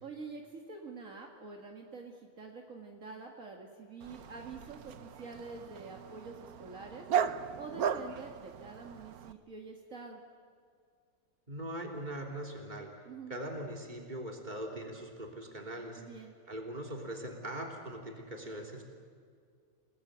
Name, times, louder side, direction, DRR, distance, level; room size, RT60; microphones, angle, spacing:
voice 1, 0.0-7.0 7.5-10.2 13.1-13.3 16.0-16.3, right 4 dB, 65° right, 1 dB, 2.2 m, -46 dB
Dog, 4.0-9.3, right 8 dB, 90° right, 1.4 m, -37 dB
voice 2, 11.5-13.0 13.3-16.0 16.5-18.8, right 1 dB, 30° right, 1 dB, 3.4 m, -41 dB
29.0 x 19.0 x 8.1 m, 2.2 s
omnidirectional pair, 1.5 m